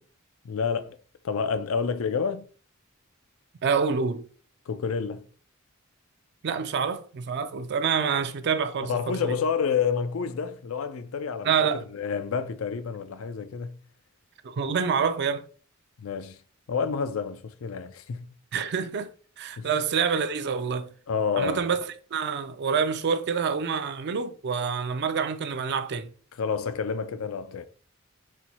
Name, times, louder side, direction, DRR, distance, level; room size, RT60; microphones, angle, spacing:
voice 1, 0.4-1.0 1.2-2.5 4.7-5.3 8.8-11.5 11.9-13.8 16.0-16.4 16.7-18.3 19.6-19.7 21.1-21.6 26.4-27.7, left 6 dB, 90° left, 0.4 m, -29 dB
voice 2, 3.6-4.3 6.4-9.4 11.4-11.8 14.4-15.5 18.5-20.9 21.4-26.1, right 6 dB, 55° right, 0.4 m, -27 dB
4.3 x 2.2 x 4.1 m
head